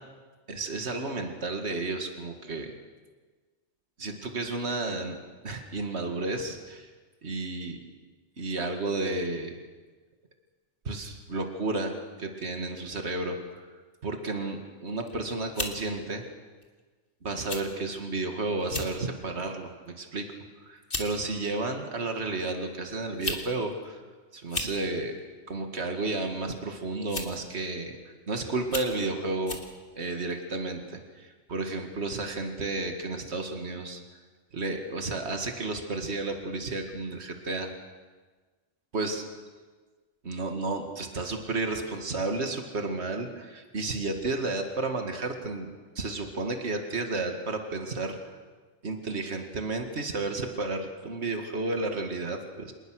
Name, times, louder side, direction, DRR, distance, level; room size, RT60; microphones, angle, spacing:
voice 1, 0.5-2.7 4.0-5.2 5.4-6.9 7.2-7.8 8.4-9.5 10.9-13.7 14.0-16.2 17.2-20.3 20.6-24.0 24.3-25.1 25.5-28.0 28.3-29.6 30.0-34.0 34.5-37.7 38.9-39.2 40.2-48.2 48.8-52.7, right 2 dB, 60° right, 4 dB, 2.4 m, -32 dB
sound 1, 14.9-15.1 15.5-15.8 16.6-16.8 17.5-17.6 18.0-18.1 18.6-18.9 19.4-19.7 20.5-20.6 20.9-21.1 22.2-22.3 23.0-23.5 23.7-23.8 24.4-24.8 26.0-26.3 27.1-27.4 28.0-28.1 28.6-29.0 29.5-29.7, left 2 dB, 45° left, 2.5 m, -34 dB
27.0 x 20.0 x 6.5 m, 1.4 s
omnidirectional pair, 1.3 m